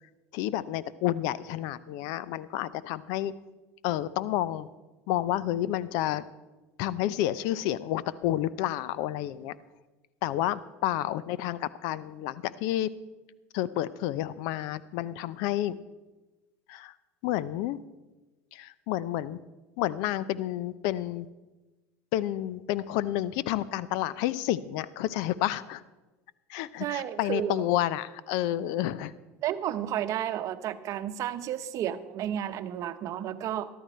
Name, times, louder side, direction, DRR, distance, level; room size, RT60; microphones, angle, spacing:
voice 1, 0.3-3.3 3.8-4.7 5.1-6.2 6.8-9.5 10.2-12.9 13.5-15.8 16.7-16.9 17.2-17.8 18.5-19.4 19.8-21.3 22.1-25.8 26.5-29.1, left 13 dB, 65° left, 18 dB, 0.6 m, -30 dB
voice 2, 26.8-27.6 29.4-33.7, right 11 dB, 50° right, 12 dB, 0.9 m, -32 dB
13.5 x 12.0 x 4.4 m, 1.1 s
hypercardioid pair, 90°, 7 cm